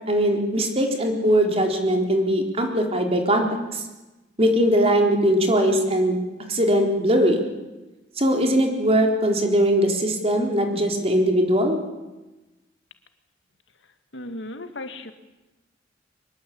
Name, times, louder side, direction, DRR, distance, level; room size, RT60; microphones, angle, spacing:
voice 1, 0.1-3.8 4.4-6.2 6.5-7.5 8.2-11.8, equal, 30° right, 3 dB, 4.2 m, -20 dB
voice 2, 14.1-15.1, left 1 dB, 70° left, 8 dB, 2.2 m, -35 dB
24.0 x 21.5 x 8.8 m, 1.1 s
head